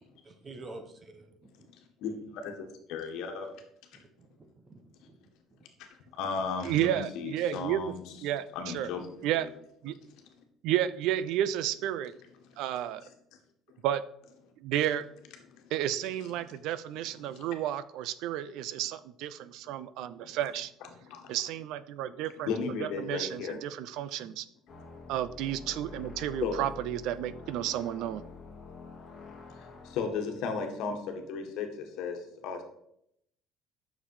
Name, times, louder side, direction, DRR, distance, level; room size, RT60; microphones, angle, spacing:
voice 1, 0.2-1.7 3.9-4.0 4.3-5.7, right 2 dB, 20° right, 7 dB, 1.0 m, -49 dB
voice 2, 2.0-3.6 5.8-5.9 6.2-8.0 8.5-9.1 9.3-9.4 15.5-15.6 16.5-16.6 17.3-17.5 19.6-19.7 20.2-20.4 21.0-21.4 22.4-23.6 24.2-24.3 26.4-26.6 29.5-32.6, left 5 dB, 60° left, 4 dB, 1.7 m, -35 dB
voice 3, 6.6-7.8 8.2-8.9 9.2-9.5 9.8-10.0 10.6-12.1 12.6-13.0 13.8-14.0 14.6-15.0 15.7-20.7 21.3-22.5 22.8-24.5 25.1-28.2, right 12 dB, 60° right, 16 dB, 0.4 m, -31 dB
sound 1, 24.7-30.1, left 4 dB, 25° left, 2.1 m, -47 dB
9.2 x 6.6 x 4.8 m, 0.74 s
cardioid pair, 175°, 0 cm